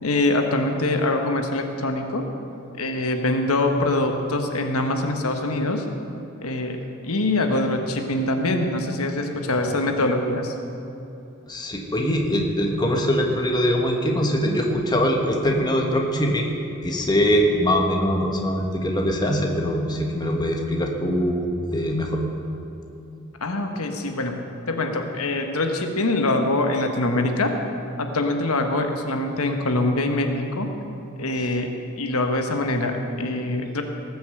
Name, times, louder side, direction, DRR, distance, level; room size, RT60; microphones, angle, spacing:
voice 1, 0.0-2.2 2.8-5.8 6.4-6.8 7.0-10.5 23.4-24.4 24.7-27.5 28.0-30.7 31.2-31.7 32.0-33.8, left 2 dB, 75° left, 4 dB, 1.3 m, -24 dB
voice 2, 11.5-16.5 16.8-21.4 21.7-22.2, equal, 20° left, 1 dB, 1.4 m, -22 dB
18.5 x 7.1 x 7.7 m, 2.7 s
head